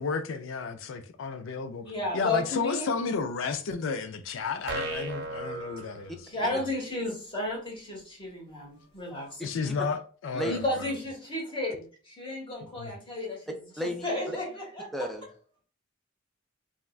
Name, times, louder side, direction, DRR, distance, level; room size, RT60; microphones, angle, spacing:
voice 1, 0.0-1.9 2.1-6.2 6.4-6.5 9.4-10.6 12.8-12.9, left 5 dB, 75° left, 0.4 m, -32 dB
voice 2, 1.8-2.9 6.2-9.4 10.5-13.4 13.8-14.9, left 2 dB, 25° left, 1.1 m, -33 dB
sound 1, 4.7-6.6, right 3 dB, 60° right, 0.5 m, -36 dB
voice 3, 14.9-15.3, equal, ahead, 0.4 m, -32 dB
3.5 x 2.1 x 2.3 m
head